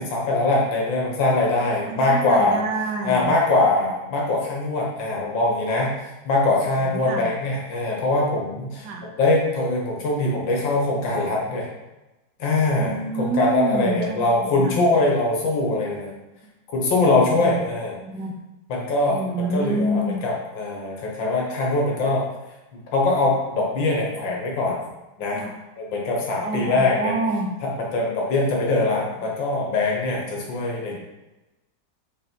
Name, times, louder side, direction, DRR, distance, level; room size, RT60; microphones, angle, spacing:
voice 1, 0.0-2.6 3.0-8.9 9.2-11.7 12.4-16.1 16.7-18.0 18.7-22.3 22.7-24.8 25.2-25.4 25.8-27.2 27.6-31.0, left 2 dB, 85° left, -2 dB, 2.0 m, -22 dB
voice 2, 1.8-3.3 6.8-7.2 8.8-9.1 12.8-14.8 17.4-17.6 18.0-18.3 19.1-20.2 25.3-25.5 26.4-27.5, right 2 dB, 65° right, 2 dB, 1.4 m, -27 dB
5.7 x 4.7 x 4.5 m, 1.1 s
omnidirectional pair, 2.0 m